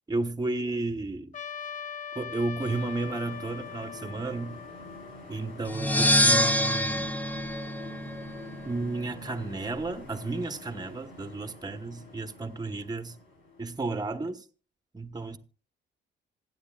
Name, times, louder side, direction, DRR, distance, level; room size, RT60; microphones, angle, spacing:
voice 1, 0.1-1.3 2.1-4.6 5.3-7.2 8.7-13.1 13.6-14.4 14.9-15.4, right 3 dB, 20° right, 1.2 m, -33 dB
Trumpet, 1.3-5.8, left 8 dB, 40° left, 0.9 m, -41 dB
sound 1, 2.6-13.8, left 2 dB, 90° left, 6.0 m, -47 dB
sound 2, 5.7-8.5, equal, 10° left, 0.8 m, -25 dB
26.5 x 9.5 x 2.4 m
cardioid pair, 90°, 20 cm